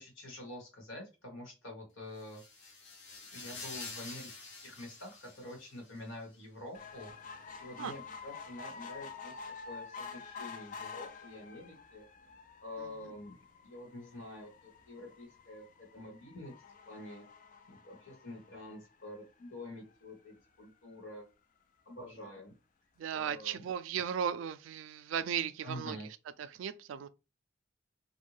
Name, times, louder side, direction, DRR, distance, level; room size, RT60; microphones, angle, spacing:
voice 1, 0.0-2.4 3.3-9.3 9.6-12.0 12.6-13.4 13.6-16.5 16.9-17.2 17.7-21.3 21.8-22.5 23.1-23.6 25.6-26.1, left 1 dB, 90° left, 1.3 m, -47 dB
sound 1, 2.2-6.0, left 3 dB, 65° left, 0.8 m, -48 dB
sound 2, 6.7-19.3 19.9-20.0 20.3-20.4 20.6-20.7, left 5 dB, 40° left, 0.3 m, -49 dB
voice 2, 12.8-13.1 23.0-26.0 26.4-27.1, right 8 dB, 80° right, 0.3 m, -36 dB
2.6 x 2.2 x 3.0 m
head